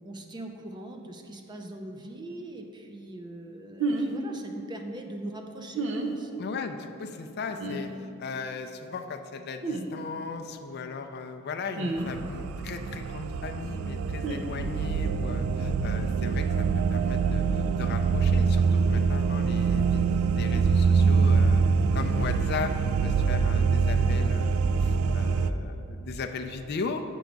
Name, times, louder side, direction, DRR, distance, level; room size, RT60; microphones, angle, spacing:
voice 1, 0.0-6.5, right 1 dB, 20° right, 3 dB, 0.5 m, -41 dB
sound 1, 3.8-4.1 5.7-6.1 7.6-7.8 9.6-9.9 11.8-12.1 14.2-14.4, right 3 dB, 60° right, 0.7 m, -29 dB
voice 2, 6.4-20.0 20.3-21.6 21.9-27.0, left 4 dB, 50° left, 6 dB, 0.4 m, -37 dB
sound 2, 12.0-25.5, right 5 dB, 80° right, 0.3 m, -24 dB
8.2 x 4.5 x 5.1 m, 2.6 s
head